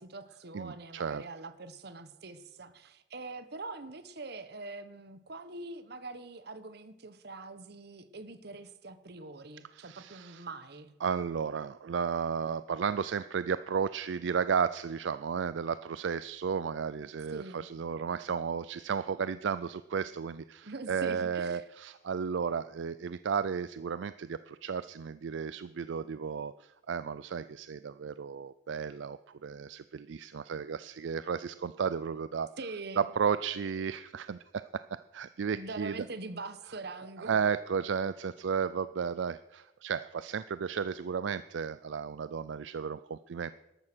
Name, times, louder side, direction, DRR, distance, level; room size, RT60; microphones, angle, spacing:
voice 1, 0.0-10.9 17.3-17.7 20.6-21.6 32.6-33.1 35.5-37.4, right 3 dB, 60° right, 12 dB, 1.2 m, -43 dB
voice 2, 0.5-1.2 9.7-10.4 11.0-32.5 33.0-36.0 37.2-43.5, right 6 dB, 75° right, 14 dB, 0.4 m, -33 dB
13.5 x 11.5 x 6.2 m, 0.92 s
head